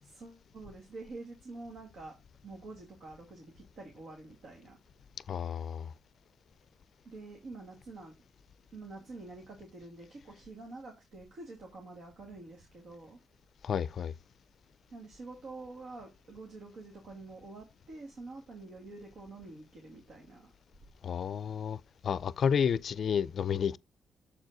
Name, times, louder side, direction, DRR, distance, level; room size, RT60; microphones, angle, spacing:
voice 1, 0.0-2.2 2.4-4.8 7.0-8.2 8.7-13.2 14.9-20.5, right 3 dB, 70° right, 2.1 m, -47 dB
voice 2, 5.3-5.9 13.6-14.1 21.0-23.8, left 7 dB, 60° left, 0.4 m, -31 dB
7.1 x 4.6 x 3.9 m
cardioid pair, 80°, 0 cm